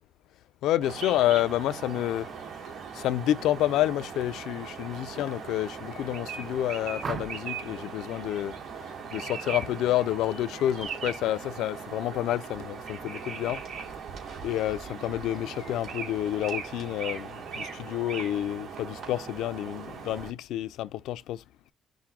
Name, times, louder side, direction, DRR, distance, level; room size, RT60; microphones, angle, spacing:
voice 1, 0.6-2.3 2.9-8.5 9.1-13.6 14.4-21.4, left 13 dB, 90° left, 0.3 m, -29 dB
sound 1, 0.8-20.3, right 6 dB, 60° right, 2.4 m, -39 dB
sound 2, 7.0-7.6 9.4-9.7 10.0-10.4, right 6 dB, 45° right, 0.4 m, -38 dB
5.9 x 2.1 x 3.6 m
cardioid pair, 90°, 0 cm